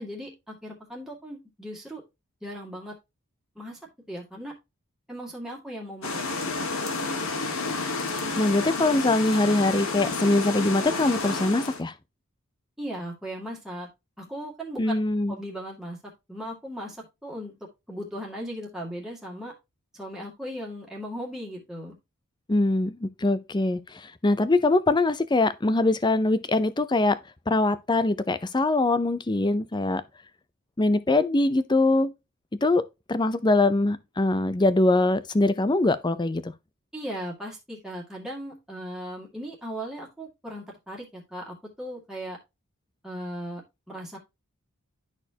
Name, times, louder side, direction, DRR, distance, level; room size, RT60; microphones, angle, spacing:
voice 1, 0.0-2.0 2.4-2.9 3.6-3.8 4.1-4.5 5.1-6.2 12.8-13.9 14.2-15.0 15.3-16.0 16.3-17.5 17.9-19.5 19.9-21.9 36.9-42.4 43.0-43.6 43.9-44.2, equal, ahead, 2.1 m, -37 dB
sound 1, 6.0-11.8, left 3 dB, 70° left, 1.7 m, -30 dB
voice 2, 8.4-11.9 14.8-15.3 22.5-23.8 24.2-27.2 27.5-30.0 30.8-32.1 32.6-32.8 33.1-36.4, left 2 dB, 20° left, 0.5 m, -23 dB
12.0 x 4.4 x 2.8 m
head